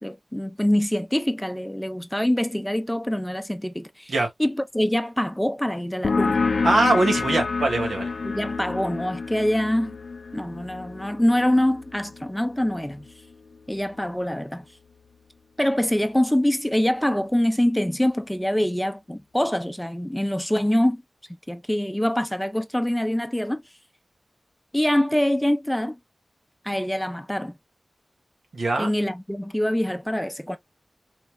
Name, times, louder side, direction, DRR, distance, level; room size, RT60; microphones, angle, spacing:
voice 1, 0.0-4.1 4.4-6.4 8.2-10.0 10.3-13.1 13.7-14.6 15.6-21.0 21.5-23.6 24.7-26.0 26.6-27.6 28.8-30.6, left 1 dB, 5° left, 0.6 m, -24 dB
sound 1, 6.0-13.3, left 4 dB, 65° left, 0.4 m, -28 dB
voice 2, 6.6-8.1 28.5-28.9, right 2 dB, 90° right, 1.6 m, -22 dB
4.1 x 3.3 x 2.3 m
wide cardioid pair, 100°, 0 cm